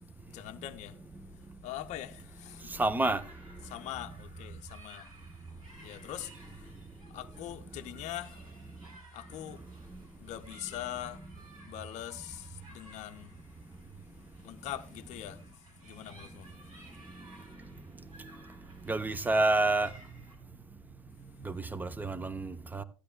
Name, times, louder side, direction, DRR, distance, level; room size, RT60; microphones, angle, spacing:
voice 1, 0.3-1.0 1.6-2.7 3.6-5.1 5.8-6.7 7.1-8.4 9.1-9.6 10.2-11.2 11.6-13.3 14.4-15.5 15.8-16.5, left 13 dB, 40° left, 0.7 m, -42 dB
sound 1, 2.3-20.4, right 1 dB, 80° right, 3.5 m, -58 dB
voice 2, 2.7-3.2 9.9-10.0 18.2-18.3 18.8-19.9 21.4-22.8, right 2 dB, 10° right, 0.7 m, -29 dB
15.5 x 10.0 x 2.2 m
figure-of-eight pair, 70°, 18 cm